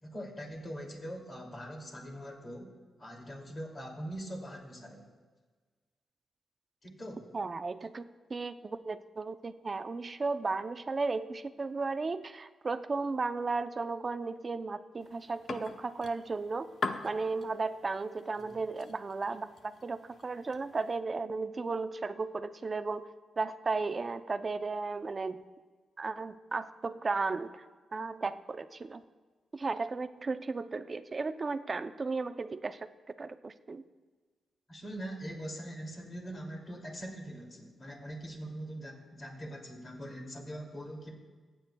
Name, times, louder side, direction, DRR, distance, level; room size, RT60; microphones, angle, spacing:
voice 1, 0.0-2.7 3.0-5.1 6.8-7.3 18.4-18.6 34.7-41.1, equal, 30° left, 0 dB, 2.4 m, -42 dB
voice 2, 7.3-16.7 17.0-23.1 23.4-25.4 26.0-27.7 27.9-29.0 29.5-33.8, right 3 dB, 30° right, 11 dB, 0.5 m, -35 dB
sound 1, 15.0-21.0, left 4 dB, 55° left, 0.7 m, -43 dB
24.5 x 9.2 x 2.2 m, 1.4 s
wide cardioid pair, 130°, 0 cm